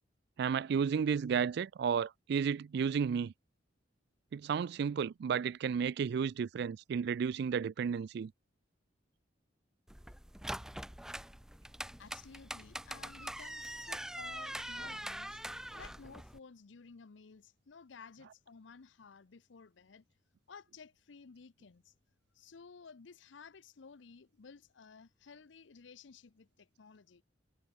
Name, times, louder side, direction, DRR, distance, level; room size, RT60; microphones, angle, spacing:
voice 1, 0.4-3.3 4.3-8.3, right 6 dB, 60° right, 0.3 m, -32 dB
sound 1, 9.9-16.4, right 1 dB, 5° right, 0.5 m, -43 dB
voice 2, 12.0-20.0 20.5-21.9 22.3-27.2, left 5 dB, 80° left, 0.7 m, -55 dB
head